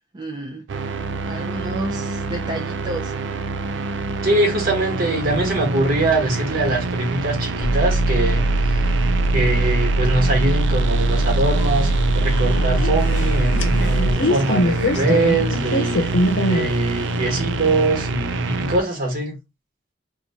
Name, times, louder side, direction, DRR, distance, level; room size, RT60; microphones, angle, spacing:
voice 1, 0.1-0.6 1.2-3.1, right 2 dB, 25° right, 0.6 m, -31 dB
sound 1, 0.7-18.8, right 3 dB, 80° right, 0.5 m, -26 dB
voice 2, 4.2-8.9 9.3-11.9 12.1-19.4, right 2 dB, 50° right, 1.4 m, -23 dB
sound 2, 7.6-14.1, right 2 dB, 50° left, 0.4 m, -20 dB
sound 3, 11.1-17.2, left 1 dB, 85° left, 0.7 m, -24 dB
2.9 x 2.4 x 4.2 m
head